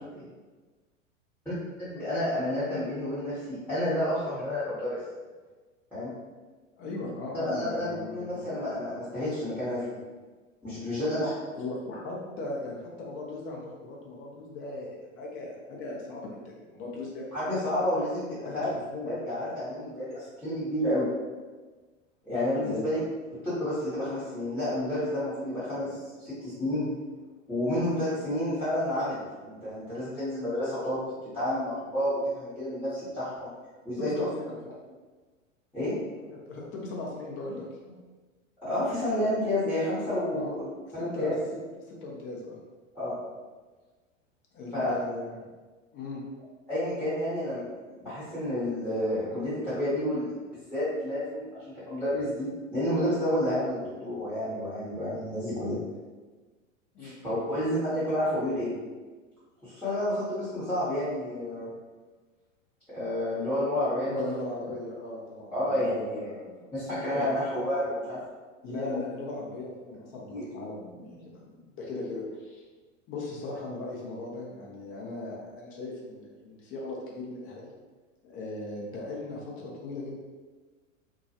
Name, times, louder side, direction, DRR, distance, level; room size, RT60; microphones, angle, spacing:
voice 1, 1.8-5.0 5.9-6.1 7.3-10.0 10.6-11.3 17.3-18.7 19.0-21.0 22.2-23.0 23.4-26.9 27.5-31.0 31.3-33.5 33.8-34.1 35.7-35.9 38.6-40.7 40.9-41.4 42.9-43.1 44.7-44.9 46.7-47.6 48.0-50.3 50.7-55.8 57.0-58.7 59.6-61.7 62.9-64.2 65.5-66.3 66.7-68.2 68.7-69.0 70.3-70.4, left 1 dB, 5° left, -13 dB, 0.9 m, -30 dB
voice 2, 6.8-8.6 11.5-17.2 18.4-19.1 22.6-22.9 34.0-34.6 36.3-38.0 40.3-40.5 40.9-41.3 41.8-42.6 44.5-45.4 45.9-46.2 56.9-57.6 64.1-66.7 67.1-67.3 68.6-72.6 73.1-77.7 78.2-80.2, left 2 dB, 35° left, -2 dB, 0.6 m, -38 dB
2.2 x 2.1 x 2.7 m, 1.3 s
hypercardioid pair, 95°, 39 cm